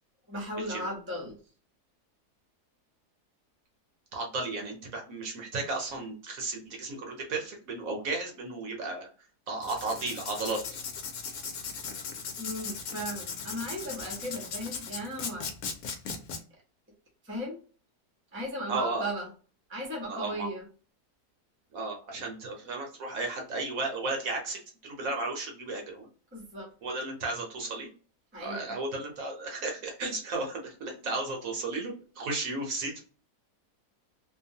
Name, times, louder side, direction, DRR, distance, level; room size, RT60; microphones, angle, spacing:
voice 1, 0.3-1.4 12.4-15.5 17.2-17.6 18.3-19.3 19.7-20.7 26.3-26.7 28.3-28.8, equal, 10° right, -1 dB, 0.6 m, -36 dB
voice 2, 4.1-9.1 9.5-10.6 18.7-19.1 20.1-20.5 21.7-26.1 26.8-27.9 28.4-33.0, right 3 dB, 65° right, 2 dB, 1.1 m, -34 dB
Writing, 9.6-16.4, left 5 dB, 70° left, 1.0 m, -38 dB
2.8 x 2.2 x 2.7 m, 0.39 s
omnidirectional pair, 1.7 m